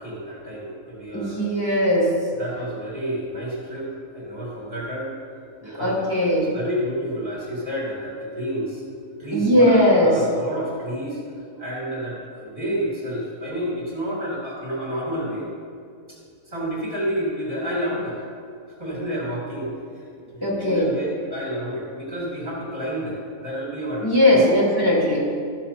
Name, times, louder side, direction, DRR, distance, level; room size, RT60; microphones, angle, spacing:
voice 1, 0.0-1.5 2.4-5.1 5.6-8.8 9.2-11.2 11.6-15.5 16.1-16.2 16.4-18.2 18.7-20.1 20.6-24.6, equal, 35° right, -6 dB, 2.9 m, -30 dB
voice 2, 1.1-2.1 5.6-6.6 9.3-10.2 20.4-20.9 24.0-25.3, left 1 dB, 15° left, -7 dB, 2.7 m, -19 dB
13.5 x 6.9 x 4.3 m, 2.4 s
omnidirectional pair, 1.6 m